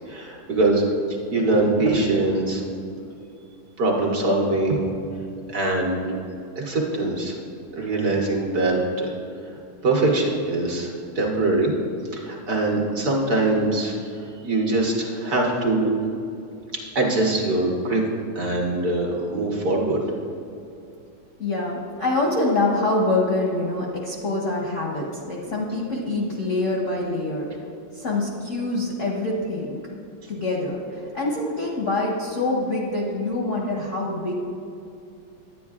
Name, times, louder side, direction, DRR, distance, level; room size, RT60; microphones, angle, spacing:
voice 1, 0.1-2.6 3.8-4.9 5.5-6.2 6.5-7.4 7.7-9.1 9.8-11.7 12.1-15.9 16.7-18.0 18.3-20.0 30.2-30.3, right 2 dB, 55° right, -2 dB, 1.3 m, -23 dB
voice 2, 21.4-27.5 27.9-29.8 30.3-34.3, left 2 dB, 60° left, -2 dB, 0.8 m, -25 dB
10.0 x 9.2 x 2.4 m, 2.6 s
omnidirectional pair, 2.3 m